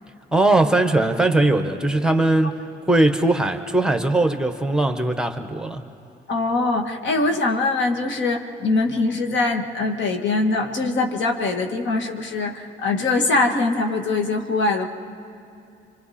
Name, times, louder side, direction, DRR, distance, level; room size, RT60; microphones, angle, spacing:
voice 1, 0.3-2.6 2.9-5.8, right 2 dB, 5° right, 6 dB, 1.2 m, -20 dB
voice 2, 6.3-14.9, left 3 dB, 70° left, 3 dB, 1.7 m, -22 dB
29.5 x 25.5 x 4.3 m, 2.7 s
cardioid pair, 90°, 20 cm